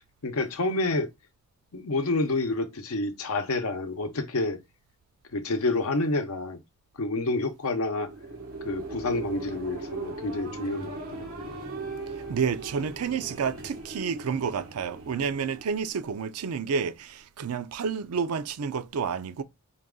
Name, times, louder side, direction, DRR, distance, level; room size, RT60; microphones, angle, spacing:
voice 1, 0.2-1.1 1.7-4.6 5.3-6.6 7.0-8.1 8.6-11.5, left 2 dB, 75° left, 0.7 m, -28 dB
sound 1, 7.8-16.4, right 3 dB, 70° right, 1.3 m, -39 dB
voice 2, 12.3-19.4, right 6 dB, 90° right, 0.4 m, -30 dB
4.0 x 2.3 x 3.6 m
head